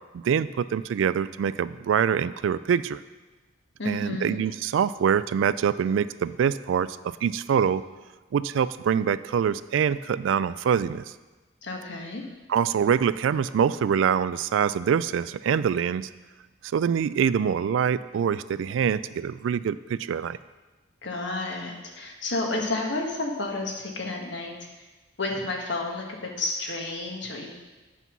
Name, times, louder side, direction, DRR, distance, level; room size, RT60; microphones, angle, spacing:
voice 1, 0.1-3.0 3.9-7.8 8.3-11.0 12.5-16.1 16.7-20.4, right 7 dB, 75° right, 16 dB, 0.3 m, -25 dB
voice 2, 3.8-4.4 11.6-12.2 21.0-24.5 25.2-27.5, left 2 dB, 65° left, 1 dB, 1.4 m, -31 dB
8.2 x 5.4 x 6.0 m, 1.2 s
head